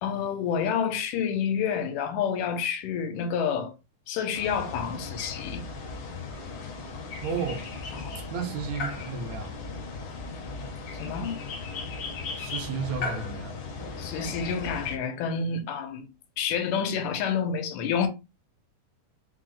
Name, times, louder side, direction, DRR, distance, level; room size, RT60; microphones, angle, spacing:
voice 1, 0.0-3.7 4.1-5.7 7.9-8.2 11.0-11.4 14.0-16.1 16.4-18.1, left 7 dB, 85° left, 2.2 m, -29 dB
sound 1, 4.3-15.0, left 4 dB, 70° left, 1.3 m, -37 dB
voice 2, 7.2-7.6 8.3-9.6 12.4-13.6, right 5 dB, 80° right, 1.7 m, -32 dB
4.9 x 2.0 x 3.7 m
omnidirectional pair, 3.6 m